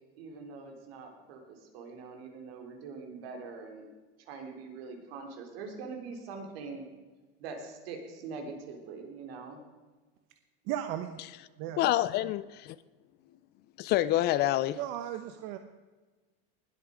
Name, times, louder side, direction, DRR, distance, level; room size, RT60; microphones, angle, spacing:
voice 1, 0.2-3.9 4.3-6.9 7.4-9.6, right 4 dB, 75° right, 3 dB, 3.5 m, -43 dB
voice 2, 10.6-11.2 11.6-11.8 14.8-15.6, right 11 dB, 55° right, 8 dB, 1.0 m, -35 dB
voice 3, 11.8-12.8 13.8-14.8, left 14 dB, 35° left, 17 dB, 0.4 m, -27 dB
20.5 x 8.2 x 5.0 m, 1.3 s
supercardioid pair, 150°, 30 cm